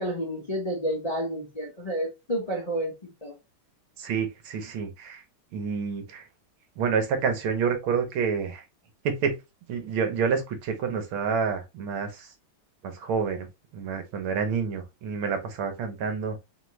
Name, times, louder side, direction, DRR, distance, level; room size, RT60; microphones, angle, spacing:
voice 1, 0.0-3.3, equal, 25° left, 0.8 m, -30 dB
voice 2, 4.0-5.2 5.5-6.2 6.8-8.6 9.0-9.4 9.7-12.3 12.8-13.5 13.7-16.4, right 6 dB, 70° right, 1.6 m, -28 dB
3.7 x 3.6 x 3.0 m
omnidirectional pair, 2.4 m